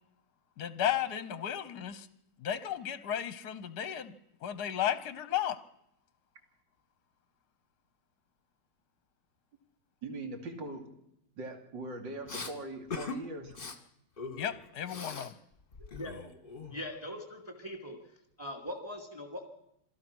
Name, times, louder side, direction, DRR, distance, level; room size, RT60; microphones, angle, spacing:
voice 1, 0.6-2.1 2.4-4.2 4.4-5.6 14.4-15.3, left 10 dB, 60° left, 13 dB, 1.3 m, -34 dB
voice 2, 10.0-10.9 11.4-13.6, right 2 dB, 60° right, 4 dB, 3.2 m, -41 dB
Respiratory sounds, 12.3-12.5 12.9-13.2 13.5-13.8 14.2-15.3 15.6-17.0, left 5 dB, 30° left, 1.4 m, -41 dB
voice 3, 16.7-18.0 18.4-19.5, left 1 dB, 5° right, 2 dB, 2.5 m, -41 dB
26.5 x 17.0 x 6.2 m, 0.81 s
omnidirectional pair, 2.3 m